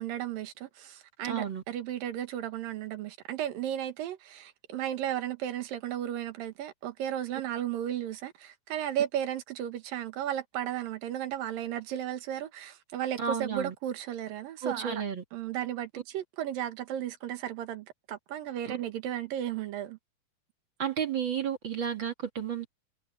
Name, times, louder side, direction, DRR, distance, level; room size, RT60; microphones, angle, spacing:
voice 1, 0.0-15.0 15.3-20.0, right 11 dB, 75° right, 3.1 m, -34 dB
voice 2, 1.2-1.6 13.2-13.7 14.6-15.2 20.8-22.7, right 7 dB, 40° right, 2.2 m, -32 dB
omnidirectional pair, 4.2 m